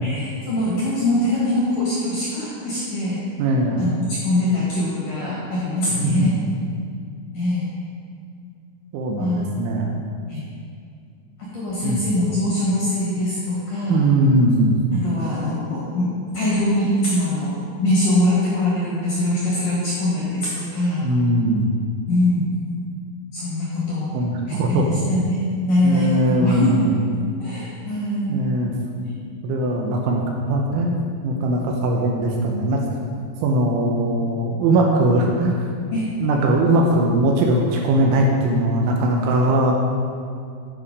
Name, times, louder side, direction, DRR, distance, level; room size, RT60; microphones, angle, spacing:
voice 1, 0.0-3.2 3.8-6.4 7.3-7.7 9.2-9.5 10.3-10.4 11.4-14.1 14.9-17.5 17.8-21.1 22.1-22.5 23.3-24.1 24.5-28.4 35.9-36.1, left 1 dB, 60° left, -7 dB, 2.3 m, -22 dB
voice 2, 3.4-3.8 5.9-6.4 8.9-10.0 11.8-12.0 13.9-14.8 21.0-21.8 24.1-25.0 25.8-26.9 28.3-28.7 29.4-31.0 31.2-32.8 33.4-35.6 36.2-39.7, right 1 dB, 80° right, 0 dB, 3.0 m, -20 dB
11.5 x 4.8 x 5.3 m, 2.3 s
omnidirectional pair, 5.8 m